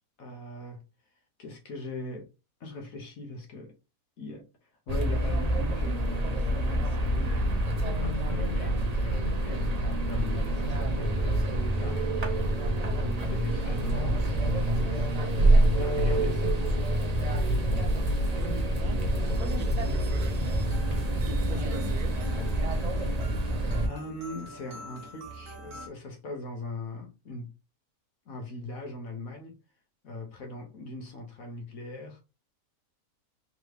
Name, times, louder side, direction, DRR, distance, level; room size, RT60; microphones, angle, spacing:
voice 1, 0.2-0.8 1.4-2.3 2.6-3.8 4.2-9.7 10.1-12.3 13.0-15.1 15.6-16.6 23.8-27.5 28.3-29.6 30.0-32.2, left 2 dB, 70° left, 1.4 m, -40 dB
sound 1, 4.9-23.9, right 1 dB, 40° right, 0.6 m, -26 dB
voice 2, 18.3-20.6 21.3-22.2, right 3 dB, 90° right, 1.3 m, -43 dB
sound 2, 20.6-25.9, right 1 dB, 65° right, 1.4 m, -46 dB
3.8 x 3.2 x 3.1 m
omnidirectional pair, 1.5 m